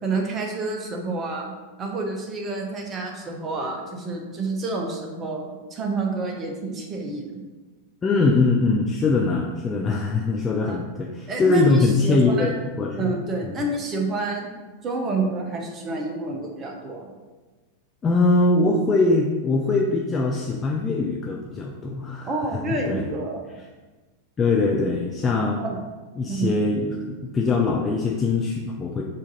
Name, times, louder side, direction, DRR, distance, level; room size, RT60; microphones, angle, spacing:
voice 1, 0.0-1.5 1.8-7.4 10.6-10.8 11.3-12.5 13.0-14.5 14.8-17.1 22.2-23.5 25.6-25.8 26.3-26.5, right 3 dB, 25° right, 1 dB, 0.8 m, -28 dB
voice 2, 8.0-13.2 13.5-13.6 18.0-22.3 22.9-23.0 24.4-25.6 26.2-29.0, left 3 dB, 20° left, -1 dB, 0.4 m, -22 dB
4.8 x 2.7 x 4.0 m, 1.3 s
figure-of-eight pair, 90°, 0 cm